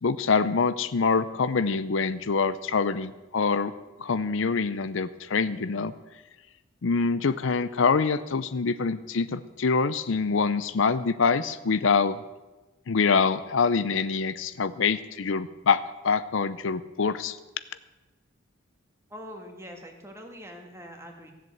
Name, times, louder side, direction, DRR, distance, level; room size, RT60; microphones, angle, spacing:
voice 1, 0.0-3.7 4.0-5.9 6.8-12.2 12.9-17.4, left 5 dB, 70° left, 14 dB, 0.6 m, -25 dB
voice 2, 19.1-21.3, equal, 15° right, 3 dB, 1.8 m, -43 dB
15.5 x 7.6 x 7.9 m, 1.1 s
head